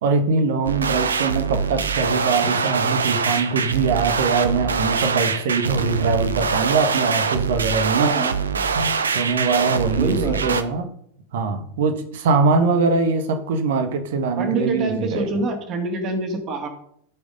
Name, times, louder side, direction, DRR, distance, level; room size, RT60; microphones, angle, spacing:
voice 1, 0.0-8.1 8.7-10.8 11.3-15.3, right 4 dB, 55° right, 9 dB, 1.4 m, -22 dB
sound 1, 0.6-10.6, right 5 dB, 70° right, 0.8 m, -23 dB
voice 2, 8.0-8.4 9.9-10.6 14.3-16.7, right 3 dB, 35° right, 4 dB, 2.6 m, -26 dB
14.5 x 5.2 x 5.4 m, 0.69 s
figure-of-eight pair, 90°, 0 cm